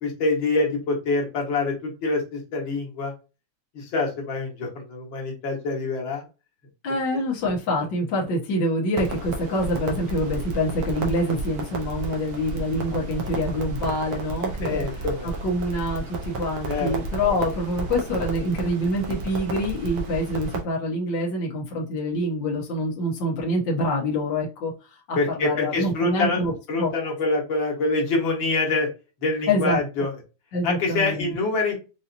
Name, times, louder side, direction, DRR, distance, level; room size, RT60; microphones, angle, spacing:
voice 1, 0.0-3.1 3.7-6.2 7.1-7.2 14.6-15.3 16.7-16.9 25.1-26.4 26.7-28.9 29.2-30.1 30.6-31.8, left 3 dB, 50° left, -2 dB, 1.7 m, -25 dB
voice 2, 6.8-14.8 15.4-26.5 26.8-26.9 29.5-29.8 30.5-31.3, left 1 dB, 70° left, -2 dB, 1.0 m, -26 dB
Crackle, 9.0-20.6, right 2 dB, 90° right, 1.0 m, -32 dB
5.5 x 2.8 x 2.6 m, 0.30 s
omnidirectional pair, 3.5 m